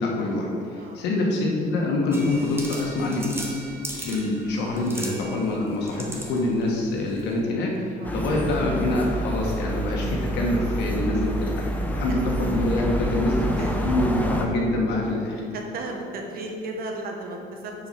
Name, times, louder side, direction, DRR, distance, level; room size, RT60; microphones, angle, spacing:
voice 1, 0.0-3.4 4.0-15.4, left 2 dB, 85° left, -1 dB, 1.5 m, -25 dB
sound 1, 2.1-7.4, right 1 dB, 15° right, 1.1 m, -38 dB
sound 2, 8.0-14.5, right 1 dB, 10° left, 0.8 m, -28 dB
voice 2, 13.4-13.8 15.5-17.7, right 2 dB, 60° right, 2 dB, 1.2 m, -35 dB
6.3 x 4.8 x 5.8 m, 2.4 s
cardioid pair, 110°, 17 cm